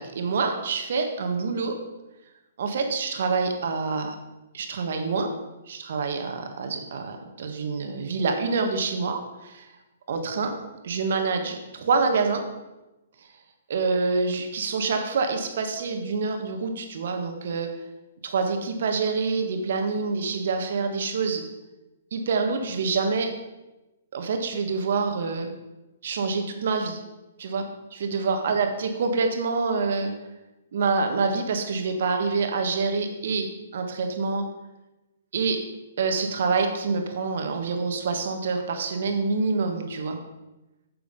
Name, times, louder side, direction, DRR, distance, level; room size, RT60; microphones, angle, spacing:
voice 1, 0.0-1.8 2.6-4.1 4.5-5.3 5.7-9.7 10.1-10.5 10.8-12.4 13.7-17.7 18.2-21.4 22.1-23.3 24.1-25.5 26.0-27.0 27.4-27.6 27.9-30.1 30.7-34.4 35.3-35.6 36.0-40.2, right 4 dB, 60° right, 5 dB, 1.6 m, -26 dB
9.6 x 6.8 x 5.3 m, 1.0 s
hypercardioid pair, 130°, 0 cm